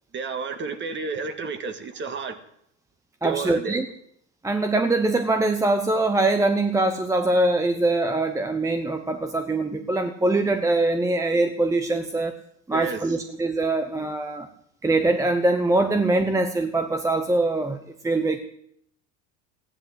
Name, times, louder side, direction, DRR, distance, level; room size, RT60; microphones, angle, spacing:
voice 1, 0.1-2.4 3.2-3.8 12.7-13.1, right 5 dB, 30° right, 1.9 m, -31 dB
voice 2, 3.2-3.8 4.4-12.3 12.7-14.5 14.8-17.8 18.0-18.4, right 2 dB, 10° right, 0.9 m, -23 dB
15.5 x 11.0 x 8.0 m
supercardioid pair, 125°, 38 cm